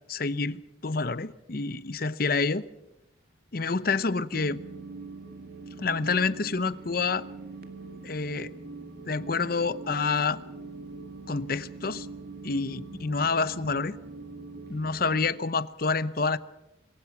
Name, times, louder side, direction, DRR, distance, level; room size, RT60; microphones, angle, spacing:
voice 1, 0.1-2.6 3.5-4.6 5.8-7.2 8.0-8.5 9.1-10.4 11.3-12.1 12.4-14.0 14.7-16.4, left 4 dB, 50° left, 0.8 m, -28 dB
sound 1, 4.3-15.3, right 3 dB, 50° right, 2.1 m, -43 dB
26.5 x 23.0 x 6.0 m
head